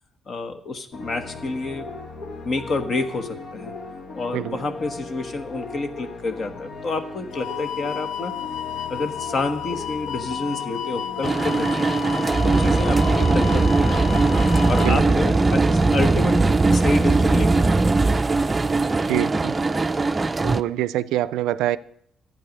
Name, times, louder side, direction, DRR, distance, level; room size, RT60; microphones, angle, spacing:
voice 1, 0.3-2.0 2.4-3.7 4.1-8.3 8.9-11.9 12.4-14.2 14.7-17.8, left 3 dB, 50° left, 1.2 m, -28 dB
sound 1, 0.9-15.9, left 3 dB, 70° left, 1.2 m, -37 dB
voice 2, 4.3-4.6 14.8-15.2 19.1-19.6 20.4-21.8, right 14 dB, 90° right, 0.4 m, -25 dB
sound 2, 7.3-14.9, left 11 dB, 85° left, 0.3 m, -32 dB
sound 3, 11.2-20.6, right 3 dB, 25° right, 0.4 m, -19 dB
11.5 x 8.7 x 5.3 m
cardioid pair, 85°, 0 cm